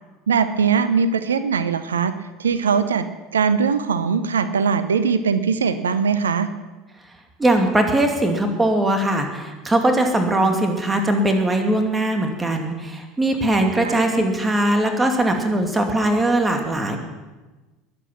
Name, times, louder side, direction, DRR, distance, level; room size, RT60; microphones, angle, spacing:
voice 1, 0.3-2.1 2.4-3.1 3.3-6.5 13.8-13.9, right 6 dB, 75° right, 13 dB, 0.7 m, -20 dB
voice 2, 7.4-17.0, right 1 dB, 15° right, 4 dB, 2.4 m, -20 dB
21.0 x 8.7 x 6.0 m, 1.2 s
figure-of-eight pair, 70°, 0 cm